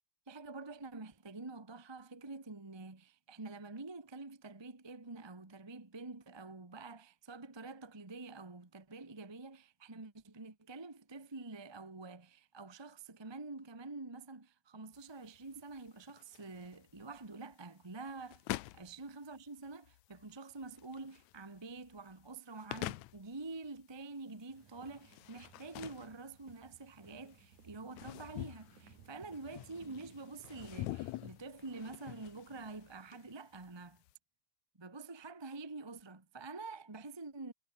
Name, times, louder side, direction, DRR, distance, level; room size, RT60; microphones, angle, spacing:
voice 1, 0.3-18.4 18.7-34.0 34.8-37.5, right 3 dB, 15° right, 0.8 m, -47 dB
sound 1, 14.9-34.1, left 17 dB, 75° left, 2.0 m, -47 dB
sound 2, 24.5-31.4, right 7 dB, 85° right, 4.5 m, -62 dB
omnidirectional pair, 3.4 m